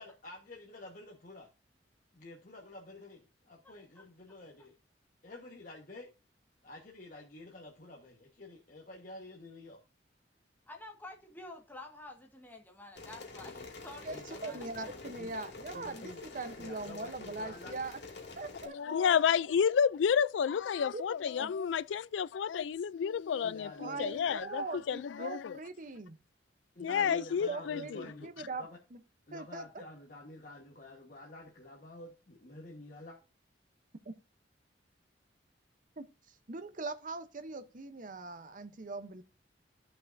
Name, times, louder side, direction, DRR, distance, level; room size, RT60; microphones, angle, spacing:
voice 1, 0.0-1.5 2.1-4.7 5.2-6.1 6.6-9.8 13.4-13.7 14.1-15.3 15.7-17.7 23.4-24.3 26.7-28.8 29.3-33.2, left 2 dB, 45° left, 1.4 m, -50 dB
voice 2, 3.6-4.1 10.7-14.7, left 2 dB, 10° left, 1.6 m, -49 dB
sound 1, 12.9-18.7, left 3 dB, 65° left, 2.6 m, -47 dB
voice 3, 14.0-18.0 18.4-19.0 20.9-21.0 21.4-21.5 23.8-26.2 27.1-29.0 29.3-29.8 34.0-34.1 36.0-39.2, right 3 dB, 45° right, 0.8 m, -41 dB
voice 4, 18.7-25.6 26.8-28.0, left 7 dB, 85° left, 0.4 m, -30 dB
14.0 x 5.6 x 2.6 m
head